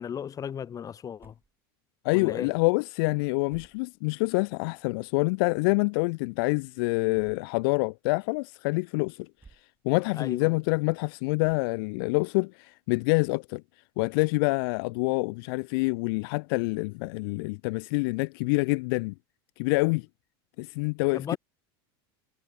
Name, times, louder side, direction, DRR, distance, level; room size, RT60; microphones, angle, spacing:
voice 1, 0.0-1.4 2.1-2.5 10.1-10.6 21.1-21.4, left 8 dB, 25° left, 2.3 m, -35 dB
sound 1, 1.2-1.6 2.3-2.4 3.5-4.2 4.8-4.9 7.1-7.6 8.2-8.3 9.4-9.8 10.3-10.4 11.4-12.0, right 5 dB, 15° right, 2.5 m, -57 dB
voice 2, 2.0-9.3 9.8-13.6 14.0-19.1 19.6-20.1 20.6-21.4, left 29 dB, 65° left, 0.4 m, -26 dB
supercardioid pair, 125°, 13 cm